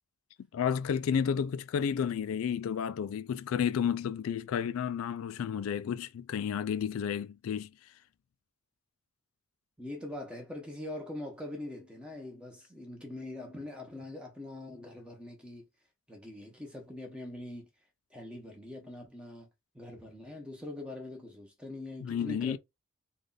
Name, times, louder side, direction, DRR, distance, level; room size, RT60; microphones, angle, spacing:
voice 1, 0.5-7.9 22.0-22.6, left 7 dB, 80° left, 0.3 m, -31 dB
voice 2, 9.8-15.7 16.1-17.7 18.1-19.5 19.7-22.6, left 1 dB, 5° right, 0.9 m, -43 dB
3.2 x 2.4 x 3.9 m
head